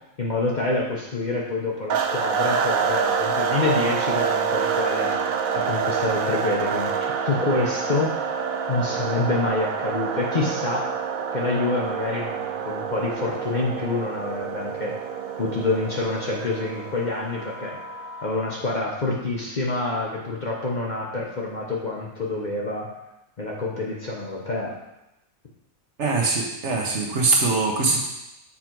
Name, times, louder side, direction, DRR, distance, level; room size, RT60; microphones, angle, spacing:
voice 1, 0.2-8.3 8.7-10.9 11.3-14.9 15.4-17.8 18.2-22.9 23.4-24.7, left 3 dB, 40° left, -3 dB, 0.8 m, -27 dB
sound 1, 1.9-18.6, right 6 dB, 85° right, 1.1 m, -27 dB
voice 2, 26.0-28.0, right 3 dB, 60° right, -1 dB, 1.2 m, -22 dB
7.1 x 3.6 x 4.5 m, 0.92 s
omnidirectional pair, 1.4 m